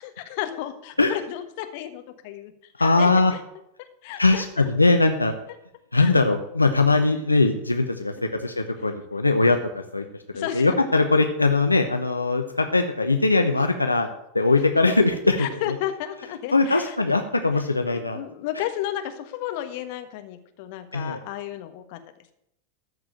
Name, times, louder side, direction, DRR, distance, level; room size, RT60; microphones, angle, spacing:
voice 1, 0.0-2.5 2.8-3.4 3.8-4.7 5.9-6.1 10.3-10.7 14.9-15.0 15.4-16.9 17.9-22.0, left 12 dB, 50° left, 8 dB, 1.4 m, -33 dB
voice 2, 2.8-3.3 4.2-5.3 5.9-10.0 10.3-14.1 14.3-15.7 16.5-18.2 20.9-21.2, left 3 dB, 80° left, 6 dB, 0.8 m, -21 dB
14.0 x 4.8 x 8.8 m, 0.78 s
figure-of-eight pair, 90°, 0 cm